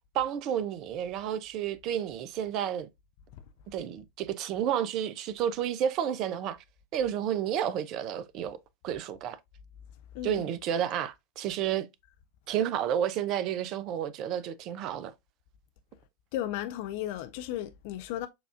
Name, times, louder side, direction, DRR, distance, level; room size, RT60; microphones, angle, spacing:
voice 1, 0.1-2.9 3.7-6.6 6.9-8.6 8.8-9.4 10.2-11.9 12.5-15.1, right 9 dB, 40° right, 0.4 m, -31 dB
voice 2, 16.3-18.3, left 12 dB, 50° left, 0.3 m, -34 dB
6.7 x 2.4 x 2.4 m
figure-of-eight pair, 90°, 0 cm